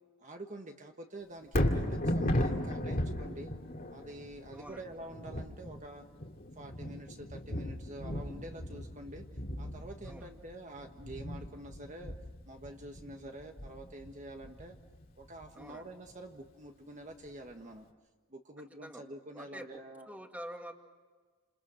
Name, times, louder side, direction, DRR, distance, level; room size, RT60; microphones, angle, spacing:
voice 1, 0.2-3.5 3.9-6.1 6.6-9.2 9.6-12.1 12.4-14.8 15.2-17.9 18.3-20.1, right 1 dB, 35° right, 4 dB, 1.4 m, -47 dB
Thunder, 1.4-15.6 16.1-16.2, left 1 dB, 45° left, 2.3 m, -36 dB
voice 2, 15.5-15.9 18.8-19.0 19.3-19.8 20.1-20.7, equal, 5° right, 4 dB, 2.0 m, -46 dB
29.5 x 27.5 x 6.3 m, 1.4 s
head